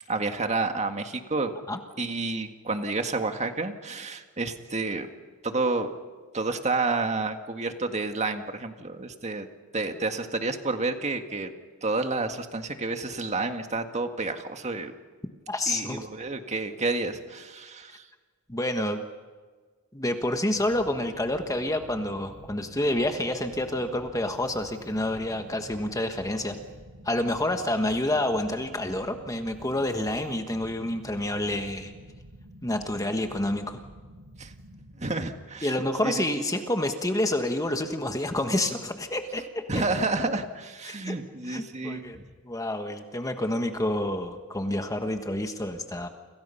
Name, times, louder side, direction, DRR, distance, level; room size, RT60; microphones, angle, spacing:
voice 1, 0.1-1.6 2.0-5.1 5.4-5.9 6.3-9.5 9.7-11.5 11.8-14.9 15.7-18.1 34.4-34.5 35.0-35.8 36.0-36.2 39.7-42.3, right 3 dB, 30° right, 6 dB, 1.9 m, -30 dB
voice 2, 15.5-16.1 18.5-19.0 19.9-26.6 27.0-31.9 32.6-33.8 35.6-39.6 40.8-41.2 41.5-42.2 42.4-46.1, left 1 dB, 15° left, 6 dB, 1.4 m, -28 dB
sound 1, 20.5-35.0, equal, 85° right, 6.1 m, -49 dB
29.5 x 26.5 x 5.7 m, 1.4 s
head